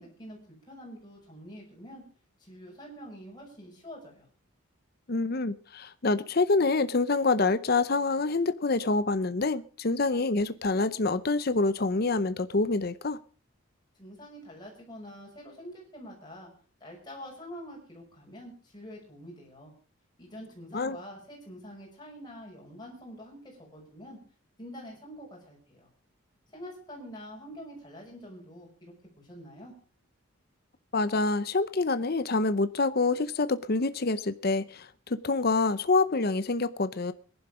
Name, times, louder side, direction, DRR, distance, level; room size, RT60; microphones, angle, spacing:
voice 1, 0.0-2.0 2.4-4.3 14.0-16.5 16.8-19.7 20.2-24.2 24.6-25.9 26.5-29.7, equal, 20° left, 6.0 m, -46 dB
voice 2, 5.1-13.2 20.7-21.0 30.9-37.1, left 3 dB, 45° left, 0.7 m, -26 dB
19.5 x 11.0 x 4.9 m
head